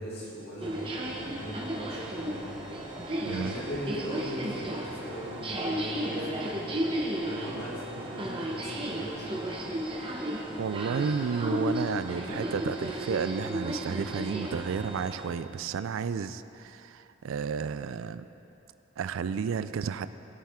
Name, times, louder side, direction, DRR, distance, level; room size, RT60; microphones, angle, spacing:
voice 1, 0.0-2.5 3.3-6.7 7.2-9.6, equal, 50° left, -7 dB, 2.7 m, -39 dB
sound 1, 0.6-15.3, right 1 dB, 25° right, 1.0 m, -34 dB
voice 2, 3.2-3.6 10.6-18.2 19.0-20.1, right 6 dB, 75° right, 13 dB, 0.3 m, -32 dB
17.5 x 7.4 x 3.6 m, 2.9 s
head